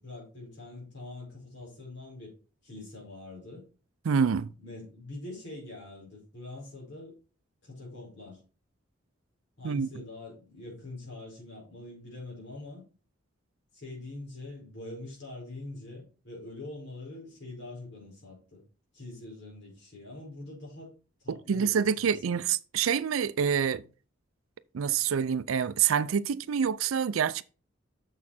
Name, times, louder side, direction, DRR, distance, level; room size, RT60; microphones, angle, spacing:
voice 1, 0.0-2.3 2.6-3.7 4.6-7.1 7.6-8.4 9.6-12.8 13.7-18.6 18.9-20.9 21.2-22.4, left 2 dB, 55° left, 4.9 m, -44 dB
voice 2, 4.0-4.5 9.6-9.9 21.3-23.8 24.7-27.4, right 7 dB, 90° right, 0.4 m, -27 dB
7.1 x 6.5 x 4.2 m
head